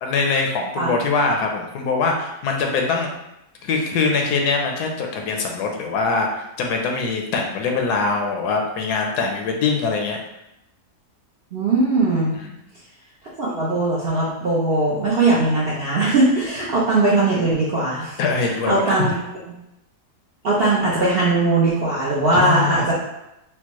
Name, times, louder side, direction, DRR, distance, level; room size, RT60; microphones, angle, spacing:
voice 1, 0.0-3.1 3.6-10.2 12.3-12.6 18.2-19.0 22.3-22.9, left 4 dB, 85° left, 2 dB, 1.2 m, -23 dB
voice 2, 11.5-12.4 13.4-18.2 18.7-19.1 19.5-19.6 20.4-22.9, right 2 dB, 60° right, -7 dB, 0.6 m, -19 dB
4.4 x 2.1 x 2.9 m, 0.88 s
omnidirectional pair, 1.7 m